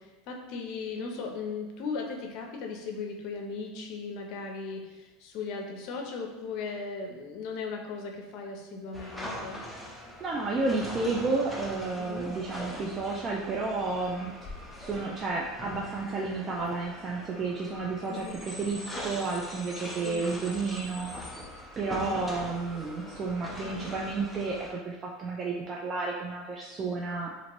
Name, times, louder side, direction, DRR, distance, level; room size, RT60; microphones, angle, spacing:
voice 1, 0.0-9.6 12.0-12.4 18.1-18.4 20.0-20.2 21.9-22.2, left 4 dB, 60° left, 2 dB, 0.6 m, -37 dB
sound 1, 8.9-24.7, left 1 dB, 5° left, 0.6 m, -42 dB
voice 2, 10.2-14.3 14.8-21.1 21.8-27.3, right 3 dB, 30° right, -2 dB, 0.3 m, -31 dB
2.8 x 2.5 x 2.9 m, 1.1 s
supercardioid pair, 110°, 0 cm